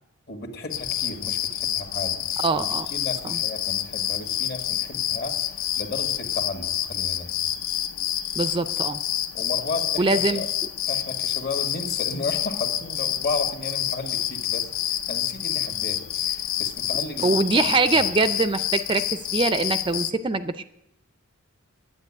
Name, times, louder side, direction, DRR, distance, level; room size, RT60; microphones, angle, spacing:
voice 1, 0.3-2.7 2.9-7.3 9.3-10.5 10.9-17.6 17.9-18.1, left 3 dB, 50° left, 5 dB, 1.7 m, -34 dB
sound 1, 0.7-20.1, left 11 dB, 65° left, 0.6 m, -28 dB
voice 2, 2.4-2.9 3.2-3.4 8.4-9.0 10.0-10.4 17.2-20.6, right 3 dB, 20° right, 12 dB, 0.4 m, -23 dB
10.5 x 8.7 x 9.6 m, 0.85 s
head